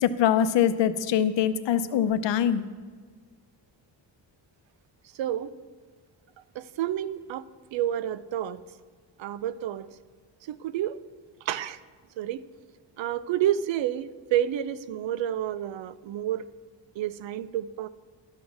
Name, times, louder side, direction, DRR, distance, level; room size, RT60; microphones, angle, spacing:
voice 1, 0.0-2.6, left 9 dB, 70° left, 12 dB, 0.7 m, -23 dB
voice 2, 5.2-5.5 6.6-8.6 9.2-9.9 10.5-11.0 11.4-11.8 12.2-12.5 13.0-16.5 17.0-17.9, right 11 dB, 75° right, 16 dB, 0.6 m, -29 dB
12.0 x 6.2 x 6.1 m, 1.5 s
cardioid pair, 120°, 45 cm